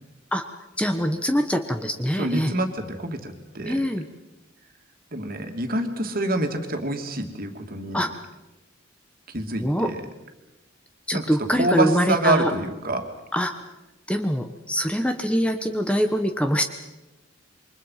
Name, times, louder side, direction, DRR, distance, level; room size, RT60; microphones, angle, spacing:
voice 1, 0.8-2.5 3.7-4.0 7.9-8.1 9.6-9.9 11.1-12.5 13.3-13.5 14.1-16.6, equal, 5° left, 6 dB, 1.1 m, -24 dB
voice 2, 2.2-3.8 5.1-8.0 9.3-10.0 11.1-11.2 11.6-13.1, right 2 dB, 45° right, 4 dB, 2.7 m, -26 dB
28.0 x 24.0 x 5.8 m, 1.0 s
head